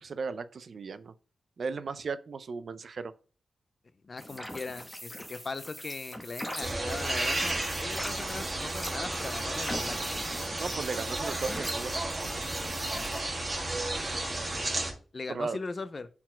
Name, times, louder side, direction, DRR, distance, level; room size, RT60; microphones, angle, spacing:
voice 1, 0.0-1.1 1.6-3.1 10.6-12.3 12.6-12.8 15.3-15.6, right 4 dB, 55° right, 0.5 m, -36 dB
voice 2, 4.1-10.0 14.5-16.1, left 3 dB, 35° left, 0.4 m, -40 dB
sound 1, 4.2-13.2, equal, 10° left, 1.0 m, -42 dB
sound 2, 6.6-14.9, right 2 dB, 25° right, 1.3 m, -33 dB
4.3 x 4.1 x 5.6 m
wide cardioid pair, 160°, 0 cm